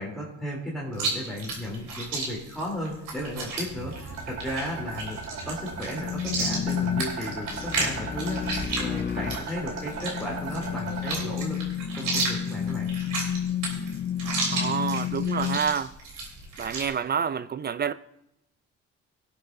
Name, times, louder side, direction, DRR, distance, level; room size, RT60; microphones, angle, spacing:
voice 1, 0.0-5.2 5.4-11.6 11.9-12.9, left 1 dB, ahead, 3.1 m, -35 dB
Chewing mastication, 0.9-16.9, right 3 dB, 85° right, 3.6 m, -33 dB
sound 1, 3.5-11.3, right 4 dB, 55° right, 1.6 m, -38 dB
sound 2, 5.9-15.6, left 8 dB, 35° left, 0.5 m, -31 dB
voice 2, 14.5-15.9 16.6-17.9, right 7 dB, 35° right, 0.4 m, -28 dB
19.0 x 8.2 x 2.6 m
cardioid pair, 90°, 30 cm